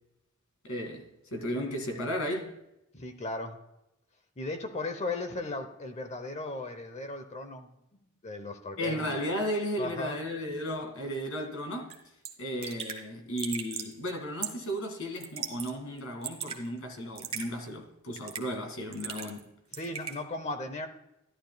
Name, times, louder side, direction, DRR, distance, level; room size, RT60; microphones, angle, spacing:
voice 1, 0.6-2.5 8.8-11.9 12.4-19.5, equal, 75° left, 2.1 m, -34 dB
voice 2, 2.9-3.6 4.4-7.8 8.2-9.2 9.8-10.2 19.7-20.9, left 2 dB, 30° left, 0.8 m, -36 dB
Raindrop / Drip, 11.9-12.0 12.2-12.3 12.6-13.0 13.4-13.9 14.4-14.7 15.2-15.7 16.0-16.6 17.2-17.5 18.1-18.5 18.9-19.4 19.7-20.2, right 7 dB, 25° right, 1.2 m, -37 dB
13.0 x 11.5 x 2.3 m
head